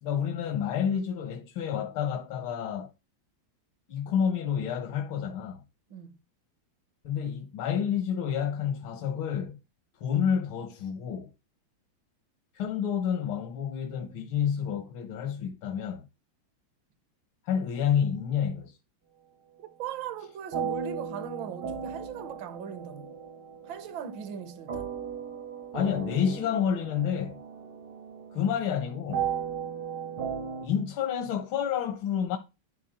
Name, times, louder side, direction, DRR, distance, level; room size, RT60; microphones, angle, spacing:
voice 1, 0.0-2.9 3.9-5.6 7.0-9.6 10.0-11.3 12.5-16.1 17.4-18.8 25.7-27.4 28.3-29.3 30.6-32.4, left 8 dB, 80° left, 1.9 m, -29 dB
voice 2, 19.6-23.1 23.6-24.9, right 8 dB, 70° right, 1.6 m, -39 dB
sound 1, 20.5-30.7, right 7 dB, 85° right, 3.6 m, -36 dB
12.0 x 4.1 x 4.1 m
omnidirectional pair, 2.2 m